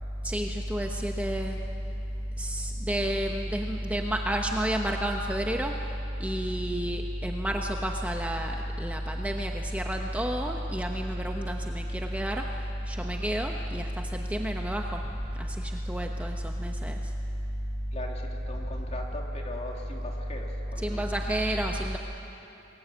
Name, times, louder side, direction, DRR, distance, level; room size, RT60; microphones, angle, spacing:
voice 1, 0.2-1.6 2.4-5.7 6.2-12.4 12.9-15.0 15.4-17.0 20.8-22.0, equal, 5° right, 2 dB, 1.1 m, -30 dB
voice 2, 17.9-21.2, left 2 dB, 35° left, 0 dB, 3.0 m, -40 dB
27.5 x 21.5 x 8.8 m, 2.9 s
head